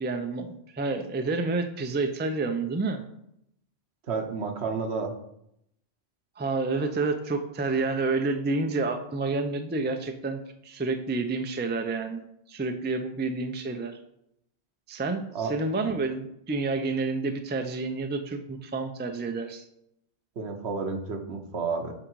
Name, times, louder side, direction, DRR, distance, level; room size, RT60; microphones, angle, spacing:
voice 1, 0.0-3.0 6.4-12.2 12.5-14.0 14.9-19.6, right 3 dB, 15° right, 6 dB, 0.3 m, -29 dB
voice 2, 4.1-5.1 15.3-15.5 20.4-21.9, right 4 dB, 75° right, 4 dB, 1.2 m, -31 dB
8.5 x 3.8 x 4.6 m, 0.77 s
omnidirectional pair, 1.1 m